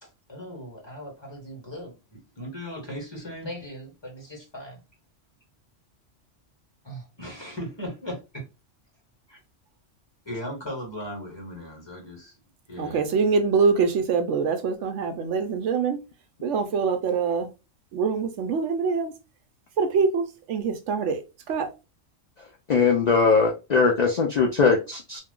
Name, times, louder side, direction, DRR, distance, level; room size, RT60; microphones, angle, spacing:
voice 1, 0.0-4.8 6.8-8.4 9.3-9.4 10.2-12.4 12.7-13.0, equal, 20° left, 1.2 m, -38 dB
voice 2, 12.8-16.0 16.4-17.5 17.9-19.1 19.8-21.2 21.5-21.7, right 5 dB, 75° right, 0.9 m, -24 dB
voice 3, 22.7-25.2, left 4 dB, 60° left, 0.4 m, -20 dB
2.5 x 2.3 x 3.5 m
omnidirectional pair, 1.3 m